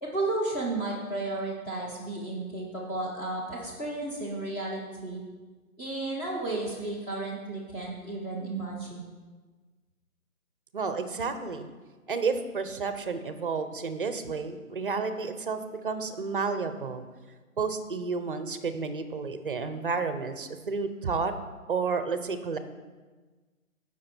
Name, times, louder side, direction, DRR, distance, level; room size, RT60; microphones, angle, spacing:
voice 1, 0.0-5.2 5.8-9.1, right 2 dB, 10° left, -5 dB, 1.0 m, -33 dB
voice 2, 10.7-11.7 12.1-17.0 17.6-21.3 21.7-22.6, right 4 dB, 35° right, 10 dB, 0.8 m, -31 dB
15.0 x 6.2 x 4.4 m, 1.3 s
hypercardioid pair, 165°, 44 cm